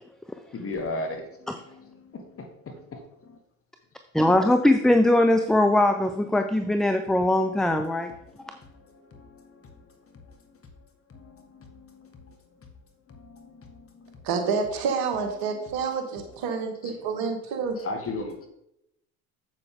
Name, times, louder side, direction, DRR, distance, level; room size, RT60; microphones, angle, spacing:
voice 1, 0.5-3.4 7.1-10.6 11.1-12.4 13.1-14.5 15.1-16.1 16.4-16.5 16.8-17.1 17.7-18.5, left 2 dB, 35° left, 4 dB, 1.8 m, -40 dB
voice 2, 4.1-8.1, left 1 dB, ahead, 7 dB, 0.6 m, -21 dB
voice 3, 14.2-17.8, right 5 dB, 60° right, 5 dB, 1.9 m, -28 dB
7.6 x 7.6 x 3.8 m, 0.81 s
hypercardioid pair, 70°, 41 cm